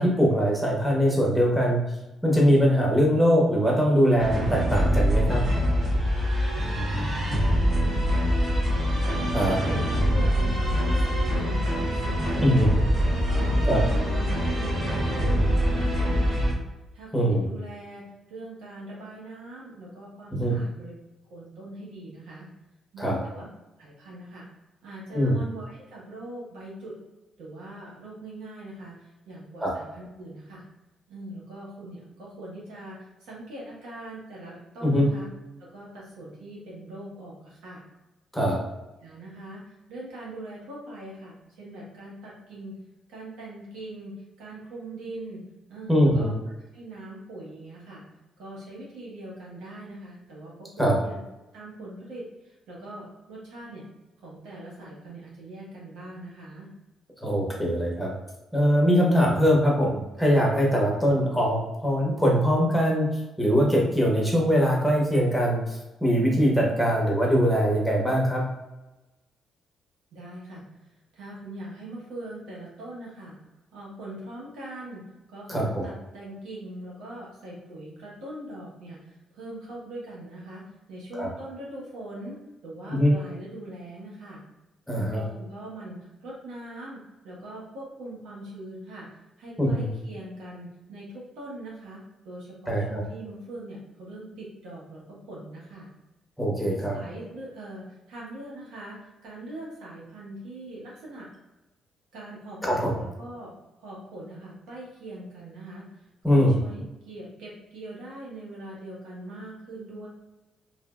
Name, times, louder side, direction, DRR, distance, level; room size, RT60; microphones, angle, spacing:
voice 1, 0.0-1.8 2.2-5.4 9.3-9.6 12.4-12.7 13.6-13.8 17.1-17.5 20.3-20.5 23.0-23.2 25.1-25.4 29.6-29.7 34.8-35.1 38.3-38.6 45.9-46.3 50.8-50.9 57.2-58.1 58.5-68.4 75.5-75.8 81.1-81.3 82.9-83.1 84.9-85.2 89.6-89.9 92.7-93.0 96.4-97.0 102.6-102.9 106.2-106.6, equal, ahead, -3 dB, 1.0 m, -22 dB
sound 1, 4.2-16.5, equal, 50° right, 1.4 m, -24 dB
voice 2, 7.6-12.8 13.2-16.6 16.9-20.9 21.3-22.5 22.9-23.5 23.8-24.5 24.8-27.0 27.4-30.6 31.1-35.3 35.6-37.8 39.0-42.8 43.1-45.4 45.7-46.3 46.7-48.0 48.4-51.2 51.5-53.8 54.2-56.7 70.1-73.4 73.7-82.4 82.6-84.4 84.9-89.1 89.4-95.9 96.6-101.3 102.1-103.5 103.8-110.1, right 1 dB, 90° right, -5 dB, 1.2 m, -41 dB
3.3 x 2.6 x 2.4 m, 1.0 s
cardioid pair, 90°, 0 cm